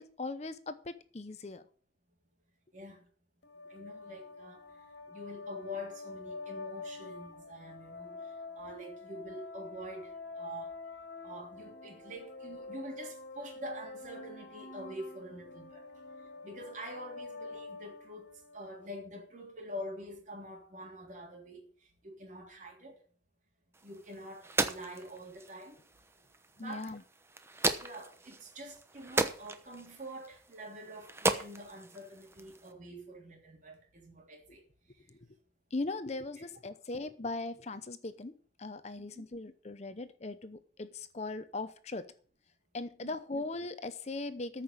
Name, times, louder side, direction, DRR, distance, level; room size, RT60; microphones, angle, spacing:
voice 1, 0.0-1.6 26.6-27.0 35.7-38.3 38.6-42.1 42.7-44.6, left 2 dB, 40° left, 0.7 m, -39 dB
voice 2, 2.7-3.1 3.7-4.6 5.1-10.7 11.2-15.9 16.4-23.0 23.8-25.8 26.6-27.0 27.8-34.6 35.0-35.1 36.4-36.5 39.0-39.3 43.0-43.1, equal, 45° right, 3.4 m, -46 dB
sound 1, 3.4-18.9, left 3 dB, 85° left, 1.7 m, -46 dB
sound 2, 23.7-32.7, right 2 dB, 15° right, 0.9 m, -37 dB
14.0 x 5.8 x 6.8 m
head